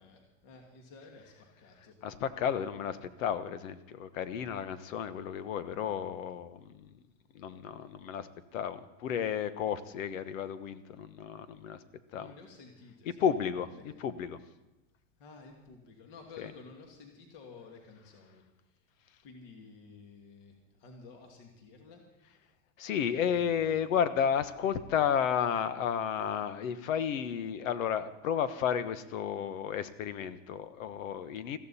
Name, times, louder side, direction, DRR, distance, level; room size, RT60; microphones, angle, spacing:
voice 1, 0.0-1.9 12.1-13.3 13.7-13.8 15.2-18.4 19.2-22.0 23.1-23.8, left 4 dB, 45° left, 1 dB, 2.5 m, -52 dB
voice 2, 2.0-6.9 7.3-11.8 12.1-12.3 13.2-14.4 16.4-16.5 22.8-31.6, left 8 dB, 85° left, 12 dB, 1.3 m, -32 dB
20.5 x 15.0 x 4.3 m, 0.96 s
supercardioid pair, 170°, 39 cm